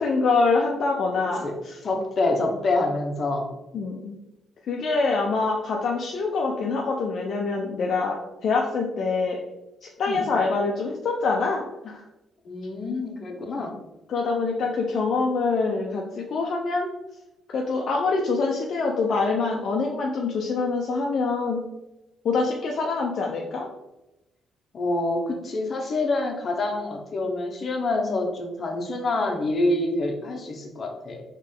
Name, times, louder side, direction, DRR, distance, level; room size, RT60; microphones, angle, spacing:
voice 1, 0.0-1.8 3.7-4.2 4.7-8.2 8.4-9.4 9.8-12.0 14.1-16.9 17.5-21.6 22.2-23.7, left 4 dB, 60° left, -1 dB, 0.5 m, -25 dB
voice 2, 1.1-1.5 1.8-3.5 10.1-10.2 12.4-13.8 24.7-31.2, left 2 dB, 45° left, 2 dB, 0.9 m, -26 dB
4.0 x 3.1 x 3.7 m, 0.95 s
cardioid pair, 90°, 0 cm